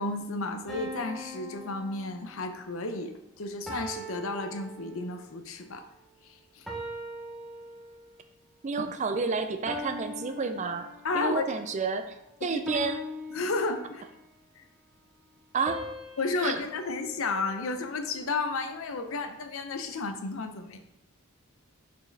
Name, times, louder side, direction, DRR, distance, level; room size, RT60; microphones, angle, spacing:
voice 1, 0.0-5.9 6.2-6.7 11.0-11.5 12.4-12.6 13.3-14.1 14.6-14.7 16.2-20.8, left 3 dB, 65° left, 7 dB, 0.6 m, -32 dB
sound 1, 0.7-2.6 3.7-5.3 6.7-8.2 9.7-11.3 12.7-14.3 15.7-18.0, left 1 dB, ahead, 0.8 m, -41 dB
voice 2, 8.6-10.9 11.1-12.1 12.4-13.0 15.5-15.8 16.4-16.6, right 4 dB, 30° right, 8 dB, 0.4 m, -30 dB
6.2 x 4.7 x 3.3 m, 0.85 s
head